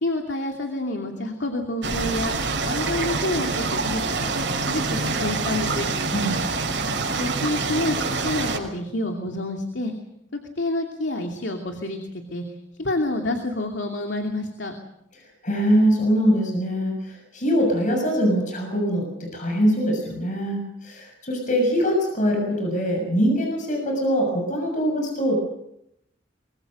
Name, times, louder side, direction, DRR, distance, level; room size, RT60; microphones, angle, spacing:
voice 1, 0.0-5.9 7.2-8.0 8.2-9.9 10.6-12.0 12.3-12.4 12.8-14.7, left 1 dB, 70° left, 3 dB, 2.7 m, -28 dB
sound 1, 1.8-8.6, right 3 dB, 80° right, 5.8 m, -26 dB
voice 2, 15.4-25.3, equal, 45° left, 2 dB, 6.8 m, -23 dB
24.5 x 23.5 x 6.5 m, 0.80 s
head